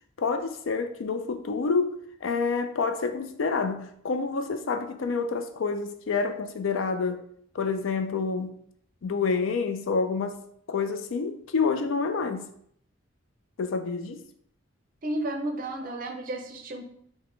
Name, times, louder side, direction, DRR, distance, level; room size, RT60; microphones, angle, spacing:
voice 1, 0.2-7.2 7.5-8.6 9.0-10.4 10.7-12.5 13.6-14.2, left 4 dB, 75° left, 0.4 m, -28 dB
voice 2, 15.0-16.8, right 1 dB, 45° right, 0.5 m, -32 dB
4.9 x 2.1 x 3.2 m
head